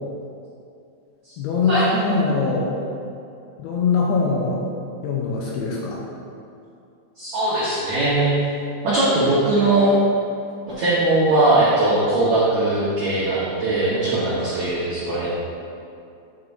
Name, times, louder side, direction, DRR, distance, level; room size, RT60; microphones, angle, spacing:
voice 1, 1.4-2.7 3.6-4.6 5.0-6.0, left 4 dB, 80° left, -3 dB, 2.5 m, -22 dB
voice 2, 7.2-8.3 8.8-9.9 10.7-15.3, right 2 dB, 85° right, -9 dB, 1.6 m, -20 dB
8.8 x 7.0 x 2.6 m, 2.6 s
omnidirectional pair, 5.2 m